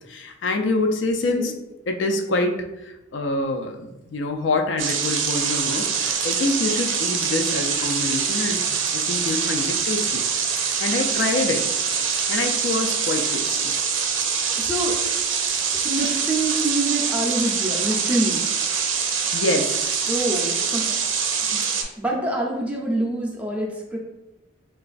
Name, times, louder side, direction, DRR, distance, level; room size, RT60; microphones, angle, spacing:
voice 1, 0.1-1.6 1.9-10.2 10.5-11.7 12.3-13.7 19.3-20.1, left 2 dB, 65° left, 4 dB, 0.4 m, -26 dB
sound 1, 4.8-21.8, right 6 dB, 75° right, 0.5 m, -24 dB
voice 2, 14.6-15.0 15.7-18.4 20.1-21.0 21.5-21.6 22.0-24.0, right 1 dB, 5° right, -3 dB, 0.5 m, -26 dB
3.8 x 2.3 x 2.4 m, 0.95 s
head